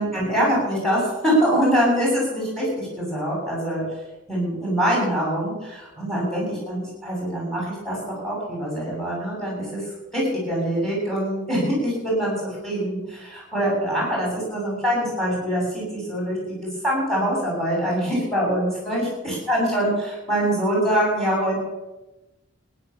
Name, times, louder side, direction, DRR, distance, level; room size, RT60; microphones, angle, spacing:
voice 1, 0.0-3.8 4.3-9.8 10.1-12.3 12.6-16.6 16.8-21.6, equal, ahead, -4 dB, 7.9 m, -24 dB
16.0 x 11.0 x 7.1 m, 1.0 s
head